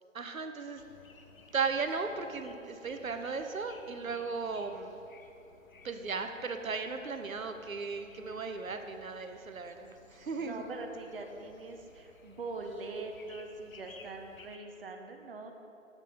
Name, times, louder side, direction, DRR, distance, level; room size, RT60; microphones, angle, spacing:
voice 1, 0.1-0.8 1.5-5.0 5.8-10.6, right 4 dB, 90° right, 7 dB, 0.7 m, -36 dB
sound 1, 0.8-14.6, left 3 dB, 85° left, 0.7 m, -58 dB
voice 2, 10.4-15.5, right 3 dB, 45° right, 3 dB, 0.6 m, -42 dB
7.3 x 5.5 x 3.8 m, 2.8 s
figure-of-eight pair, 150°, 40 cm